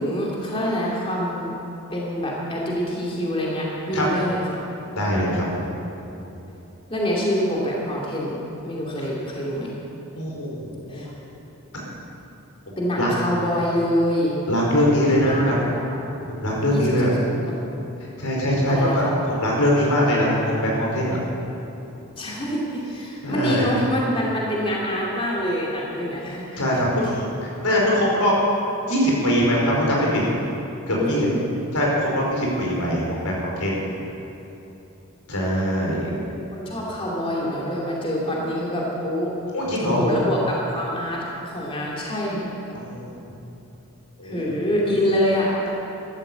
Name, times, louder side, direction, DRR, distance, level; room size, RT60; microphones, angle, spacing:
voice 1, 0.0-1.5 1.9-4.6 6.9-9.8 10.9-11.1 12.8-14.4 15.3-16.0 16.7-17.6 18.7-19.1 22.2-26.6 26.9-27.1 31.0-31.4 35.8-36.2 36.5-39.3 39.8-42.8 44.2-45.7, equal, 25° left, -4 dB, 2.6 m, -26 dB
voice 2, 5.0-5.6 10.1-11.0 11.7-11.9 13.0-13.1 14.5-15.5 16.3-17.1 18.2-19.0 19.3-20.3 20.6-21.2 23.2-23.7 26.6-27.3 27.6-28.3 28.9-30.2 30.9-31.3 31.7-33.8 35.3-36.0 39.5-40.0 42.7-43.2 44.2-44.5, equal, 90° left, -3 dB, 4.8 m, -22 dB
13.5 x 13.0 x 8.1 m, 2.9 s
head